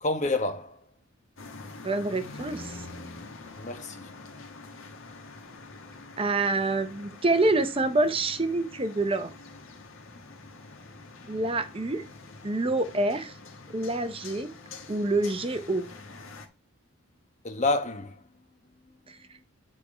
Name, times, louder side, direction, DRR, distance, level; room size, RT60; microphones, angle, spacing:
voice 1, 0.0-0.8 3.6-4.1 17.4-18.2, left 2 dB, 35° left, 1.1 m, -28 dB
sound 1, 1.4-16.5, left 3 dB, 70° left, 1.5 m, -45 dB
voice 2, 1.8-2.8 6.2-9.3 11.3-12.0 12.4-13.3 13.7-14.5 14.9-15.9 19.1-19.2, right 2 dB, 25° right, 0.7 m, -27 dB
9.0 x 4.3 x 4.9 m
head